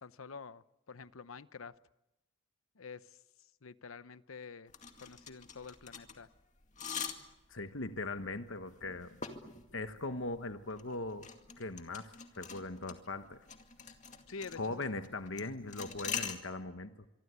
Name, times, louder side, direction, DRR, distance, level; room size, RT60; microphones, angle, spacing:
voice 1, 0.0-1.7 2.7-4.7 5.0-6.3 14.3-14.9 16.0-16.1, left 5 dB, 90° left, 15 dB, 0.9 m, -48 dB
sound 1, 4.7-16.4, left 6 dB, 35° left, 2.2 m, -45 dB
voice 2, 7.5-9.2 9.7-11.3 11.6-13.4 14.6-16.9, left 2 dB, 70° left, 9 dB, 1.2 m, -40 dB
25.5 x 24.0 x 8.3 m, 0.94 s
head